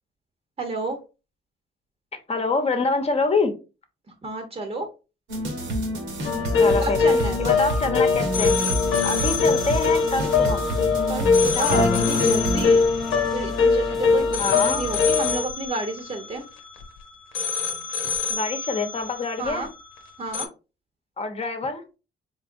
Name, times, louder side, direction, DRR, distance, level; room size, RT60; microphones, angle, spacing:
voice 1, 0.6-1.0 4.2-4.9 6.8-7.4 11.1-12.8 13.1-16.5 19.4-19.7 20.2-20.5, right 2 dB, 30° right, 4 dB, 0.9 m, -30 dB
voice 2, 2.1-3.5 6.6-7.0 7.4-8.5 9.0-10.7 11.5-12.0 14.4-14.9 18.3-19.7 21.2-21.8, left 3 dB, 30° left, 7 dB, 0.9 m, -26 dB
sound 1, 5.3-12.6, equal, 75° right, 1.4 m, -28 dB
sound 2, 6.2-16.9 17.3-20.0 20.3-20.5, left 5 dB, 80° left, 0.9 m, -23 dB
sound 3, 6.6-15.4, right 3 dB, ahead, 0.6 m, -39 dB
3.9 x 3.4 x 2.6 m, 0.30 s
cardioid pair, 90°, 20 cm